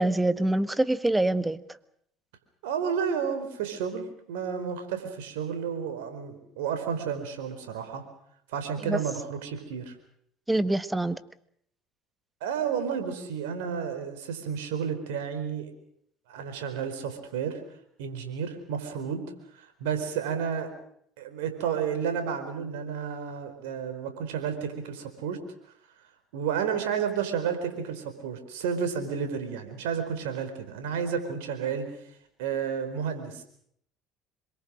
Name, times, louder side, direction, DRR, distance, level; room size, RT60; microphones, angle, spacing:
voice 1, 0.0-1.6 8.8-9.0 10.5-11.2, right 1 dB, 10° right, 14 dB, 1.5 m, -25 dB
voice 2, 2.6-8.0 8.5-9.9 12.4-15.7 16.3-17.6 18.0-19.2 19.5-20.7 21.2-25.4 26.3-32.0 32.4-33.4, right 7 dB, 80° right, 8 dB, 4.6 m, -31 dB
26.5 x 23.0 x 6.5 m, 0.68 s
hypercardioid pair, 70°, 0 cm